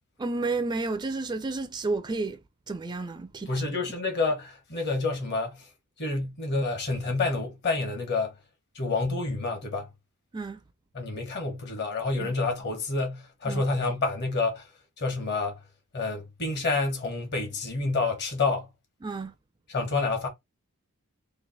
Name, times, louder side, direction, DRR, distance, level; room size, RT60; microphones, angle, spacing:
voice 1, 0.2-2.4 2.7-3.5 10.3-10.6 12.2-12.3 13.5-13.6 19.0-19.3, right 3 dB, 20° right, 0.4 m, -31 dB
voice 2, 3.5-5.6 6.0-8.3 8.7-9.9 10.9-14.7 15.0-15.6 15.9-18.7 19.7-20.3, left 3 dB, 50° left, 1.2 m, -28 dB
3.1 x 2.5 x 3.9 m
head